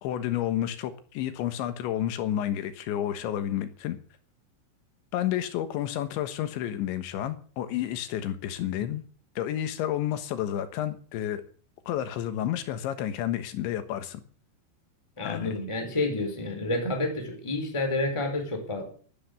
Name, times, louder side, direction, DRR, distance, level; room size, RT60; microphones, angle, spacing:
voice 1, 0.0-4.0 5.1-9.0 9.4-11.4 11.9-14.2 15.2-15.6, left 11 dB, 75° left, 3.6 m, -30 dB
voice 2, 15.2-18.8, left 2 dB, 5° left, 3.8 m, -29 dB
13.0 x 12.0 x 8.3 m
omnidirectional pair, 5.4 m